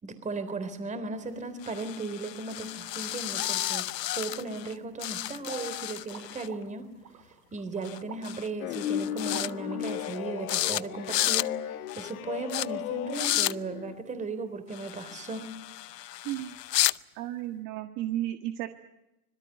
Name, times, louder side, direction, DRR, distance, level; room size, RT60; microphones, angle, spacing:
voice 1, 0.0-6.9 7.5-15.5, right 3 dB, 15° right, 12 dB, 3.5 m, -36 dB
sound 1, 1.6-4.7 5.0-6.5 7.8-8.0 8.2-8.5 8.7-9.5 9.8-10.2 10.5-10.8 11.1-11.5 11.9-12.1 12.5-12.7 13.1-13.5 14.7-17.0, left 14 dB, 80° left, 0.8 m, -32 dB
sound 2, 5.4-10.4, right 8 dB, 85° right, 5.8 m, -49 dB
sound 3, 8.6-13.9, left 11 dB, 60° left, 1.7 m, -35 dB
voice 2, 16.2-16.6 17.1-18.7, right 14 dB, 40° right, 7 dB, 1.7 m, -33 dB
26.0 x 22.0 x 8.0 m, 0.93 s
hypercardioid pair, 130°, 48 cm